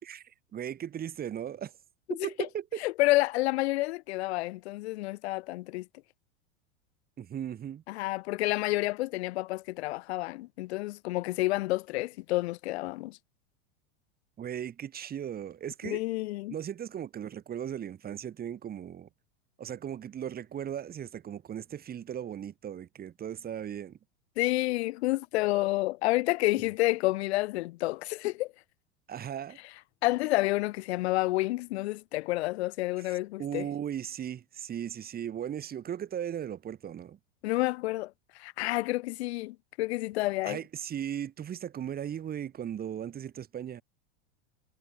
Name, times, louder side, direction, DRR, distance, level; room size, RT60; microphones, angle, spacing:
voice 1, 0.0-1.7 2.1-2.8 7.2-7.8 14.4-16.0 16.5-19.1 19.6-24.0 29.1-29.6 33.1-37.2 40.4-43.8, right 9 dB, 25° right, 3.6 m, -37 dB
voice 2, 2.1-2.5 2.8-5.9 7.9-13.2 15.8-16.5 24.4-28.5 30.0-33.7 37.4-38.1 38.4-40.6, left 19 dB, 70° left, 2.9 m, -29 dB
supercardioid pair, 125°, 34 cm